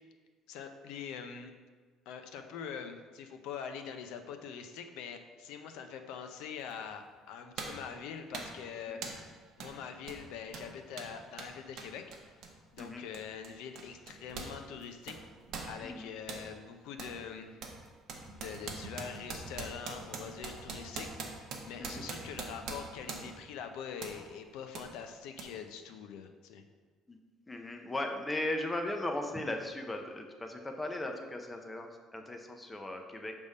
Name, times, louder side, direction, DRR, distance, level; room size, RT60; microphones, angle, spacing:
voice 1, 0.5-1.5 2.1-9.0 9.6-12.4 12.7-15.2 15.7-17.6 18.3-26.6, left 7 dB, 75° left, 6 dB, 0.5 m, -44 dB
sound 1, 6.7-6.8 7.6-7.9 8.3-8.6 9.0-9.3 9.6-9.8 10.0-14.6 14.8-16.5 17.0-17.2 17.6-23.5 24.0-24.2 24.7-24.9 25.4-25.5, right 4 dB, 50° right, 0.8 m, -43 dB
voice 2, 27.5-33.4, left 1 dB, 10° left, 3 dB, 0.4 m, -37 dB
6.5 x 3.5 x 5.3 m, 1.5 s
cardioid pair, 175°, 0 cm